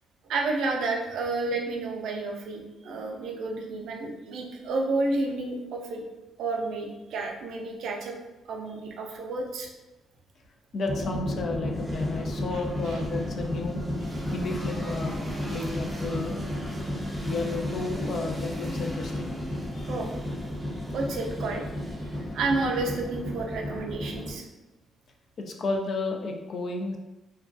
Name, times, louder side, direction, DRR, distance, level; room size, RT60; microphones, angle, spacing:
voice 1, 0.2-6.0 6.4-8.2 8.5-9.7 12.9-13.0 19.9-20.1 20.9-21.7 22.3-24.5, right 3 dB, 75° right, 1 dB, 0.4 m, -30 dB
voice 2, 10.7-13.8 14.3-15.2 15.5-16.4 17.2-19.3 19.7-19.9 25.4-27.0, left 3 dB, 55° left, 3 dB, 0.4 m, -32 dB
sound 1, 10.9-24.3, left 1 dB, 25° left, 0.8 m, -33 dB
sound 2, 11.7-23.5, equal, 15° right, 0.5 m, -41 dB
2.2 x 2.2 x 2.5 m, 1.1 s
cardioid pair, 90°, 0 cm